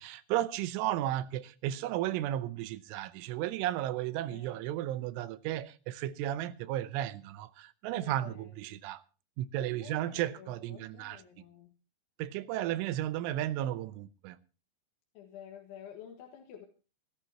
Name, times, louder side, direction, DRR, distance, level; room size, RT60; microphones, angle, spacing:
voice 1, 0.0-9.0 9.4-11.2 12.2-14.4, right 13 dB, 90° right, 3.3 m, -34 dB
voice 2, 4.2-4.7 7.9-8.9 9.5-11.8 12.4-13.1 15.2-16.7, left 8 dB, 80° left, 4.0 m, -51 dB
25.0 x 12.5 x 3.0 m
omnidirectional pair, 5.4 m